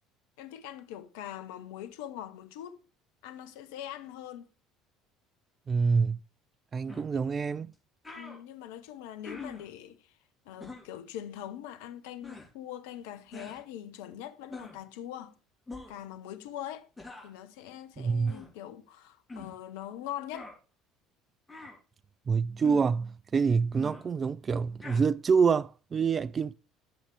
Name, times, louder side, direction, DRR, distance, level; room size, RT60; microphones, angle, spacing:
voice 1, 0.4-2.8 3.2-4.5 8.1-10.2 10.4-15.3 15.9-16.9 17.2-20.5, left 11 dB, 65° left, 0.7 m, -42 dB
voice 2, 5.7-6.2 6.7-7.7 18.0-18.3 22.3-26.5, right 5 dB, 30° right, 0.4 m, -26 dB
sound 1, 6.9-7.1 7.7-7.8 8.0-8.4 9.2-9.7 10.6-10.9 12.2-12.5 13.3-13.6 14.5-14.8 15.7-16.0 17.0-17.3 18.3-18.5 19.3-19.6 20.3-20.6 21.5-21.8 22.6-22.9 23.7-24.0 24.8-25.0, left 3 dB, 15° left, 3.0 m, -44 dB
10.5 x 7.2 x 3.4 m
figure-of-eight pair, 60°, 0 cm